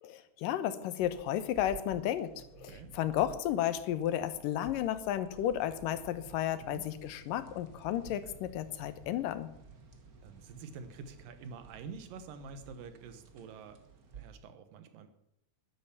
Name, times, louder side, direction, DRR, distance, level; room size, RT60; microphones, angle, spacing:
voice 1, 0.0-9.5, left 11 dB, 80° left, 13 dB, 2.6 m, -33 dB
sound 1, 1.0-14.3, right 5 dB, 45° right, 1.2 m, -54 dB
voice 2, 10.2-13.8 14.1-15.1, right 5 dB, 80° right, 9 dB, 3.0 m, -47 dB
12.0 x 11.5 x 7.1 m, 0.76 s
omnidirectional pair, 3.9 m